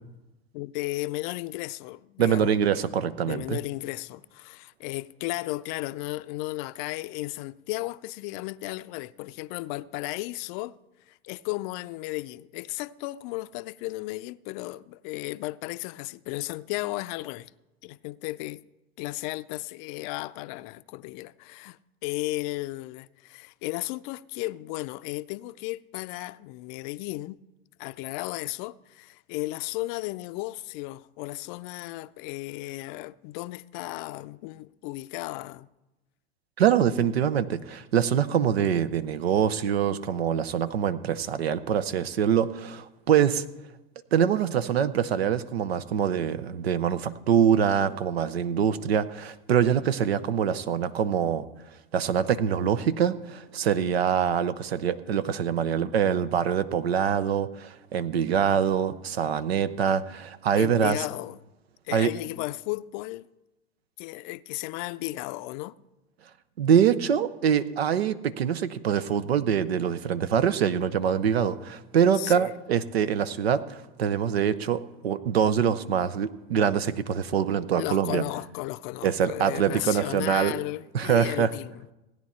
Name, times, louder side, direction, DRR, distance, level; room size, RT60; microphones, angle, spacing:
voice 1, 0.5-2.6 3.2-10.8 11.1-17.5 17.8-18.6 19.0-27.4 27.8-35.7 60.6-61.4 61.8-63.3 64.0-65.7 72.2-72.5 77.7-81.9, left 19 dB, 55° left, 0.5 m, -34 dB
voice 2, 2.2-3.6 36.6-43.4 44.1-51.5 51.9-61.0 61.9-62.1 66.6-78.2 79.0-80.6 80.9-81.5, right 8 dB, 90° right, 0.7 m, -24 dB
16.5 x 9.5 x 4.3 m
hypercardioid pair, 100°, 30 cm